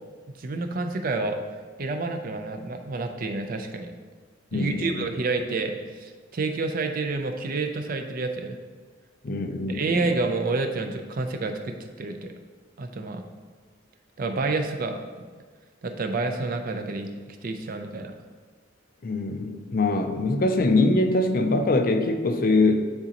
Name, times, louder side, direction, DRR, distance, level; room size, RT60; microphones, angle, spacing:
voice 1, 0.4-1.4 1.8-3.9 4.5-8.6 9.7-12.3 12.8-13.2 14.2-15.3 15.8-18.1, right 3 dB, 45° right, 6 dB, 0.5 m, -29 dB
voice 2, 4.5-5.0 9.2-10.0 19.0-22.9, left 2 dB, 50° left, 6 dB, 0.5 m, -23 dB
9.7 x 4.0 x 2.9 m, 1.5 s
head